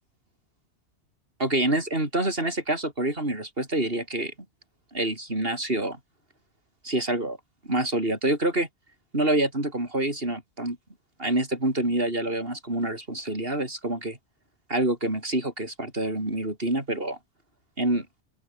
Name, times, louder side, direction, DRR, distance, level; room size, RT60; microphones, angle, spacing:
voice 1, 1.4-4.3 4.9-6.0 6.8-7.4 7.7-8.7 9.1-10.8 11.2-14.2 14.7-17.2 17.8-18.1, right 1 dB, 55° right, 6.4 m, -27 dB
open air
omnidirectional pair, 1.2 m